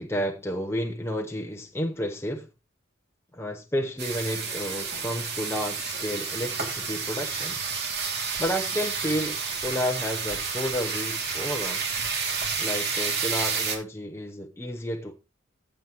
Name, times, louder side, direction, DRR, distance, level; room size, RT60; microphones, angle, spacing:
voice 1, 0.0-2.5 3.3-7.6 8.4-11.8 12.6-15.1, equal, 15° left, 0.8 m, -31 dB
sound 1, 4.0-13.8, right 5 dB, 55° right, 2.5 m, -30 dB
Female speech woman speaking, 4.4-7.7 8.6-10.8, equal, 20° right, 3.7 m, -53 dB
15.0 x 7.5 x 3.0 m
head